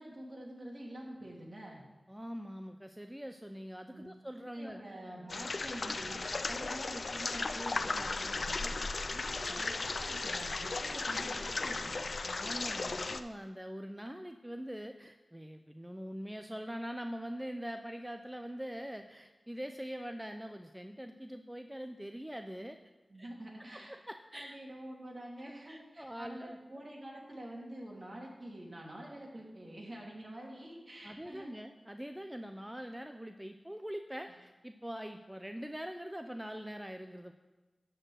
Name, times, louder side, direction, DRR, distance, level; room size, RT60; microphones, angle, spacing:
voice 1, 0.0-1.8 3.9-4.0 4.3-8.7 9.1-12.0 23.1-24.0 24.3-31.5 34.3-34.4, right 1 dB, 45° right, -3 dB, 3.0 m, -47 dB
voice 2, 2.1-4.8 9.5-9.6 12.2-22.8 23.2-23.3 23.7-24.6 25.7-26.6 31.0-37.3, equal, 10° right, 7 dB, 0.5 m, -43 dB
sound 1, 5.3-13.2, left 3 dB, 65° left, 0.5 m, -36 dB
11.5 x 4.5 x 7.5 m, 1.2 s
cardioid pair, 50°, 0 cm